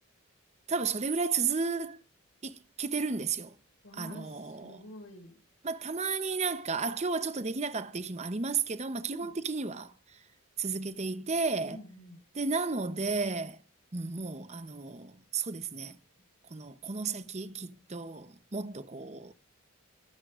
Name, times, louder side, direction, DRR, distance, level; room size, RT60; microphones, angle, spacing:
voice 1, 0.7-2.0 2.4-3.5 4.0-4.8 5.6-9.9 10.6-11.8 12.3-13.6 13.9-16.0 16.5-19.3, right 4 dB, 30° right, 0.7 m, -33 dB
voice 2, 3.8-5.4 9.0-9.3 11.7-12.2, left 1 dB, 75° left, 5.0 m, -48 dB
23.5 x 9.5 x 2.4 m
head